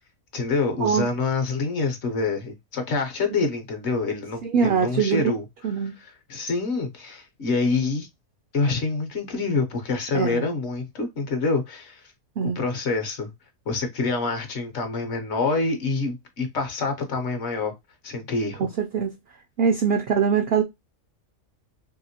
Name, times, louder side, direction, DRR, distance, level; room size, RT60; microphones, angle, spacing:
voice 1, 0.3-5.4 5.8-8.1 8.5-12.1 12.4-13.3 13.7-17.7 18.0-18.7, left 3 dB, 60° left, 0.9 m, -26 dB
voice 2, 4.4-5.2 5.6-6.0 10.1-10.5 12.4-12.6 18.6-19.1 19.6-20.6, right 6 dB, 70° right, 0.5 m, -23 dB
2.9 x 2.8 x 2.7 m
omnidirectional pair, 1.5 m